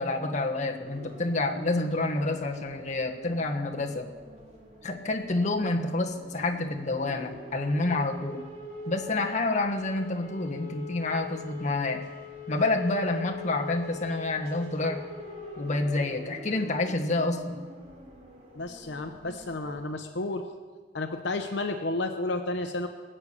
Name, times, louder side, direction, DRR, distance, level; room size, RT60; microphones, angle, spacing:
voice 1, 0.0-4.1 4.8-8.4 8.9-12.0 12.5-15.0 15.6-17.6, left 2 dB, 40° left, 2 dB, 1.3 m, -28 dB
sound 1, 0.8-19.9, left 3 dB, 35° right, 2.9 m, -44 dB
voice 2, 18.6-20.4 20.9-22.9, left 2 dB, 70° left, 6 dB, 0.8 m, -31 dB
20.5 x 8.7 x 6.7 m, 1.5 s
head